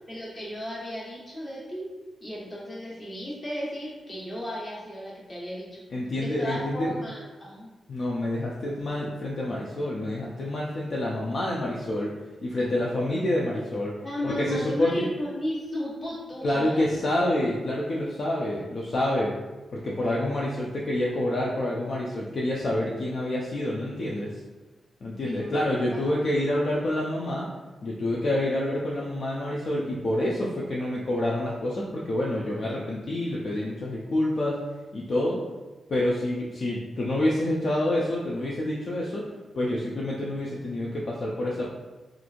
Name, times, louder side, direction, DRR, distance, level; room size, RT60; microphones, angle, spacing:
voice 1, 0.1-1.9 2.2-5.8 6.2-7.7 14.0-16.9 25.2-25.7 25.9-26.0 26.5-26.7, equal, 30° left, -7 dB, 1.2 m, -34 dB
voice 2, 5.9-6.9 7.9-12.1 12.4-13.9 14.2-15.1 16.4-19.3 19.7-24.4 25.0-27.5 27.8-34.6 34.9-35.4 35.9-41.7, left 1 dB, 55° left, -4 dB, 0.4 m, -27 dB
3.0 x 2.4 x 2.4 m, 1.2 s
cardioid pair, 90°, 0 cm